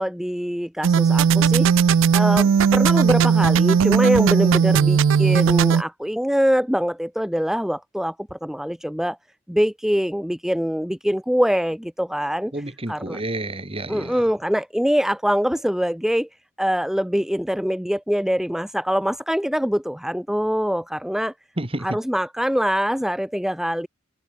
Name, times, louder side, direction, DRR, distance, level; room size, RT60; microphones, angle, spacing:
voice 1, 0.0-1.7 2.1-9.2 9.5-12.5 12.9-13.2 13.9-16.3 16.6-21.3 21.8-23.9, equal, ahead, 0.9 m, -23 dB
sound 1, 0.8-5.8, right 6 dB, 70° right, 0.4 m, -17 dB
voice 2, 12.5-14.2 21.6-22.0, right 1 dB, 30° right, 2.0 m, -30 dB
head